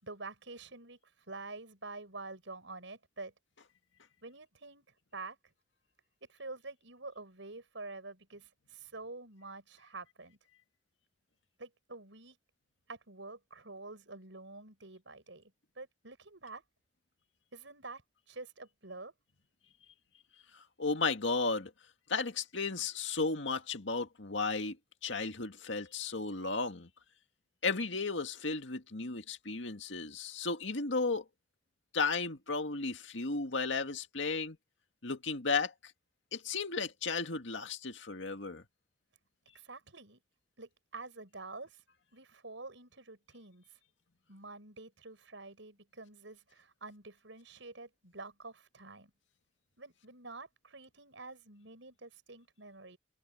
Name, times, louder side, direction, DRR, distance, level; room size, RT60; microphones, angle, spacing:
voice 1, 0.0-1.0 1.3-3.3 4.2-4.9 5.1-5.5 6.3-10.4 11.6-12.4 12.9-16.6 17.5-18.0 18.3-19.1 39.5-40.2 40.6-41.8 42.1-43.8 44.3-49.1 49.8-53.0, right 3 dB, 85° right, 6.3 m, -48 dB
voice 2, 20.8-21.7 22.1-24.8 25.0-26.9 27.6-31.2 31.9-34.6 35.0-35.7 36.3-38.6, left 4 dB, 80° left, 2.0 m, -34 dB
head